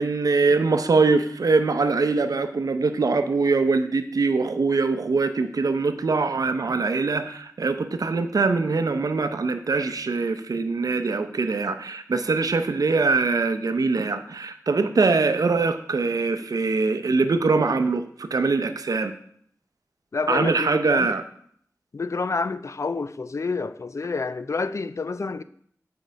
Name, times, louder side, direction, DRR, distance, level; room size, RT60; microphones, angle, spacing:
voice 1, 0.0-19.1 20.3-21.2, right 4 dB, 80° right, 0.6 m, -23 dB
voice 2, 20.1-21.1 21.9-25.4, left 4 dB, 55° left, 0.4 m, -28 dB
7.8 x 4.6 x 5.1 m
wide cardioid pair, 80°, 6 cm